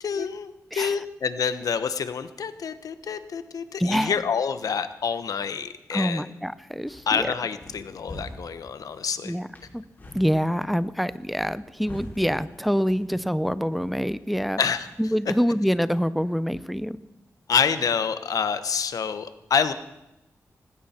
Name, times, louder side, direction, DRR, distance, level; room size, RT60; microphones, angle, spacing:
voice 1, 0.0-6.3 7.1-9.3 14.6-14.9 17.5-19.7, left 6 dB, 75° left, 11 dB, 1.1 m, -27 dB
voice 2, 3.8-4.2 5.9-7.3 9.2-9.5 9.7-9.8 10.1-14.6 15.0-17.0, equal, ahead, 15 dB, 0.6 m, -26 dB
sound 1, 6.6-15.1, left 1 dB, 30° left, 5.8 m, -46 dB
19.0 x 16.0 x 4.4 m, 0.94 s
wide cardioid pair, 100°, 6 cm